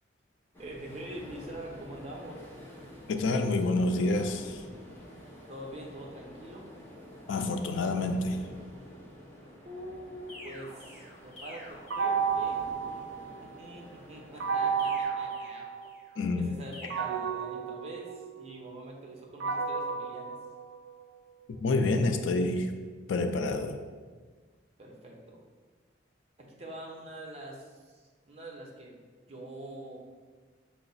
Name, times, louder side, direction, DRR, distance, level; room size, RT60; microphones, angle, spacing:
sound 1, 0.5-15.0, equal, 15° left, 0.6 m, -49 dB
voice 1, 0.6-2.5 5.5-6.7 9.6-12.7 13.4-15.7 16.3-20.4 24.8-25.4 26.4-29.0 29.3-30.0, right 1 dB, 35° right, -1 dB, 0.6 m, -44 dB
voice 2, 3.1-4.6 7.3-8.4 16.2-16.6 21.6-22.7 23.1-23.8, left 2 dB, 85° left, 7 dB, 0.4 m, -28 dB
sound 2, 10.3-12.7 14.8-16.2 16.7-17.2, left 1 dB, 35° left, 0.9 m, -49 dB
sound 3, 11.9-13.7 14.4-16.2 16.9-21.2, right 6 dB, 85° right, 0.5 m, -32 dB
5.6 x 2.0 x 3.9 m, 1.4 s
head